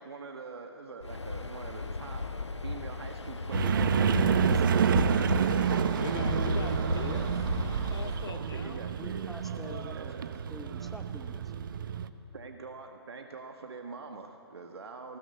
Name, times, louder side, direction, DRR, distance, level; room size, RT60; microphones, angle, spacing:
voice 1, 0.0-2.3 2.6-4.5 8.3-9.3 9.9-10.3 10.7-10.9 12.3-15.2, right 4 dB, 65° right, 4 dB, 1.6 m, -44 dB
Waves surf, 1.0-8.3, left 3 dB, 85° left, 1.3 m, -34 dB
sound 1, 3.5-12.1, right 7 dB, 50° right, 0.9 m, -29 dB
voice 2, 3.6-5.6 7.0-7.3 9.0-10.2 10.5-11.5, equal, ahead, 7 dB, 0.7 m, -46 dB
voice 3, 5.9-7.3 7.6-8.9 9.5-10.0, left 6 dB, 60° left, 9 dB, 0.8 m, -42 dB
19.0 x 17.5 x 7.9 m, 2.8 s
figure-of-eight pair, 135°, 14 cm